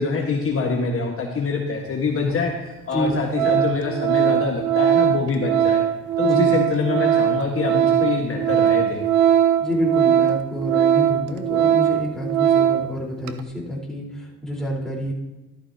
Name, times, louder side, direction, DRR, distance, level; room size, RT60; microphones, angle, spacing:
voice 1, 0.0-5.8 6.2-9.0, left 4 dB, 45° left, 0 dB, 1.5 m, -25 dB
Organ, 2.3-2.4 2.9-3.1 3.3-12.9 13.2-13.4, right 10 dB, 80° right, 0.7 m, -20 dB
voice 2, 2.9-3.5 6.2-6.5 9.6-15.1, equal, ahead, -5 dB, 4.1 m, -28 dB
13.5 x 13.0 x 2.8 m, 1.1 s
cardioid pair, 90°, 30 cm